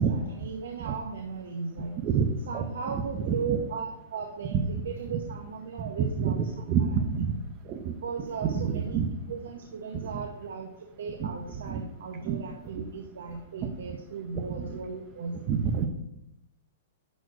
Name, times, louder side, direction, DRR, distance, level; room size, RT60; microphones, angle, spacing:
voice 1, 0.0-1.9 2.5-6.5 7.0-7.1 8.0-15.4, right 5 dB, 80° right, 2 dB, 1.3 m, -37 dB
voice 2, 2.0-3.0 3.3-3.6 4.5-4.6 6.2-6.3 6.7-7.3 7.7-7.9 8.4-9.0 11.2-11.3 11.7-11.8 12.2-12.4 13.6-13.7 14.3-14.7 15.5-15.9, right 7 dB, 25° right, 6 dB, 0.7 m, -27 dB
11.0 x 4.4 x 6.2 m, 0.80 s
hypercardioid pair, 175°, 0 cm